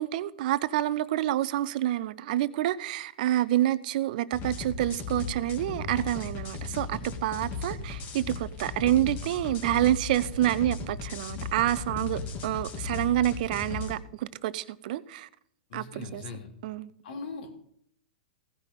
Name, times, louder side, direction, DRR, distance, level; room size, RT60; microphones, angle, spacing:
voice 1, 0.0-15.3 15.7-16.2 16.6-16.9, right 14 dB, 55° right, 0.6 m, -28 dB
sound 1, 4.3-13.9, left 5 dB, 35° left, 2.1 m, -36 dB
voice 2, 15.7-16.5 17.0-17.6, left 4 dB, 65° left, 3.2 m, -40 dB
16.5 x 5.7 x 5.4 m
hypercardioid pair, 125°, 5 cm